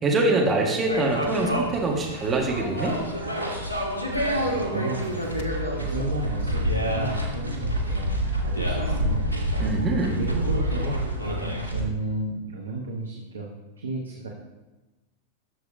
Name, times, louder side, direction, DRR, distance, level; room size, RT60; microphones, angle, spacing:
voice 1, 0.0-3.0 9.6-10.2, right 2 dB, 20° right, -1 dB, 1.4 m, -24 dB
sound 1, 0.9-11.8, equal, 85° left, 1.3 m, -27 dB
voice 2, 4.3-5.2 5.7-9.4 10.2-13.5 13.8-14.3, right 2 dB, 70° right, 0 dB, 0.9 m, -33 dB
sound 2, 4.8-8.1, left 1 dB, 55° left, 0.7 m, -39 dB
11.0 x 6.6 x 2.6 m, 1.1 s
figure-of-eight pair, 90°, 0 cm